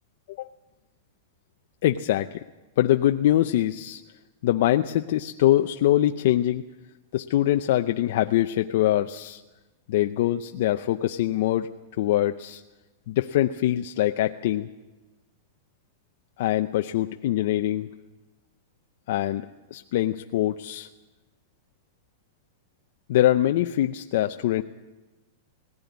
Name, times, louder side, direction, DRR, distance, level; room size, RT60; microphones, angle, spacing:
voice 1, 1.8-2.4 2.8-4.0 4.4-6.6 7.1-9.4 9.9-11.7 12.0-12.6 13.1-14.7 16.4-17.9 19.1-20.9 23.1-24.6, left 13 dB, 55° left, 6 dB, 0.6 m, -23 dB
19.0 x 15.5 x 9.4 m, 1.1 s
supercardioid pair, 170°, 0 cm